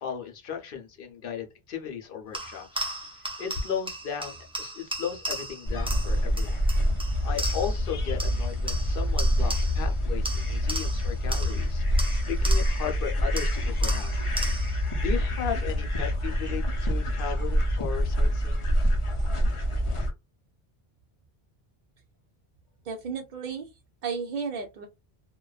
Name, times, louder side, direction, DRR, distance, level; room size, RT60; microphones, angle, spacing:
voice 1, 0.0-2.9 3.2-6.6 7.2-11.8 12.3-14.2 14.5-14.7 15.0-18.7, left 8 dB, 65° left, 0.8 m, -36 dB
sound 1, 2.3-7.9 8.2-9.9 10.2-12.9 13.4-14.8, right 1 dB, 10° right, 0.3 m, -36 dB
sound 2, 5.6-20.1, equal, 40° left, 0.5 m, -26 dB
voice 2, 22.8-23.7 24.0-24.8, right 5 dB, 60° right, 0.6 m, -33 dB
2.4 x 2.2 x 2.3 m
omnidirectional pair, 1.1 m